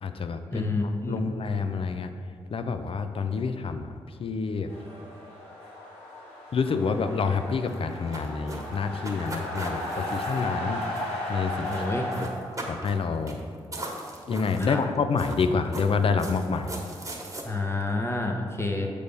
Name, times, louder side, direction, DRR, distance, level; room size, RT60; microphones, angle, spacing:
voice 1, 0.0-2.1 2.5-4.7 6.5-10.8 11.3-11.8 12.6-13.4 14.3-16.7, left 5 dB, 50° left, 8 dB, 0.5 m, -28 dB
voice 2, 0.5-1.2 11.7-12.1 14.6-14.8 17.4-18.9, left 2 dB, 20° left, 2 dB, 0.9 m, -29 dB
sound 1, 4.7-12.3, left 1 dB, 80° left, 1.7 m, -35 dB
sound 2, 7.7-11.3 11.5-11.9 12.1-13.0 13.3-13.4 13.7-14.8 15.2-17.4, right 1 dB, 30° right, 1.3 m, -39 dB
6.7 x 3.4 x 5.3 m, 2.2 s
hypercardioid pair, 40°, 12 cm